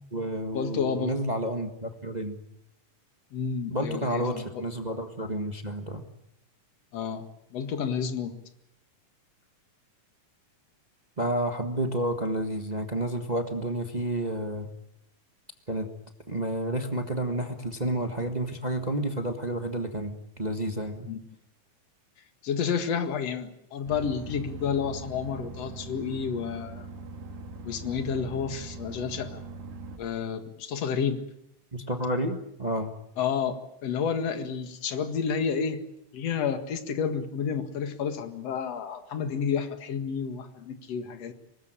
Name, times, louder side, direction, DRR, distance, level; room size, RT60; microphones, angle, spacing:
voice 1, 0.0-2.4 3.7-6.0 11.2-14.7 15.7-15.9 16.3-21.1 31.7-32.9, right 1 dB, 35° right, 6 dB, 0.6 m, -30 dB
voice 2, 0.5-1.1 3.3-4.4 6.9-7.3 7.5-8.3 21.1-21.2 22.4-26.9 27.6-29.4 30.0-31.2 33.2-35.8 36.1-41.3, left 6 dB, 55° left, 8 dB, 2.7 m, -30 dB
sound 1, 23.9-30.0, right 3 dB, 70° right, 3.9 m, -41 dB
24.0 x 20.0 x 8.9 m, 0.79 s
omnidirectional pair, 3.6 m